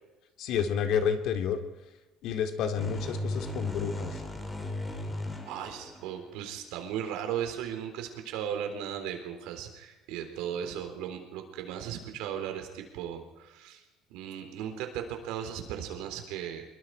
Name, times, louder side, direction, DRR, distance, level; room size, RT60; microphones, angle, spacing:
voice 1, 0.4-1.6 2.2-4.2, left 7 dB, 60° left, 6 dB, 2.3 m, -29 dB
sound 1, 2.8-6.5, left 1 dB, 10° left, 3.0 m, -37 dB
voice 2, 5.5-13.8 14.1-16.6, right 9 dB, 85° right, 5 dB, 3.9 m, -36 dB
25.5 x 22.0 x 4.9 m, 1.1 s
cardioid pair, 150°, 0 cm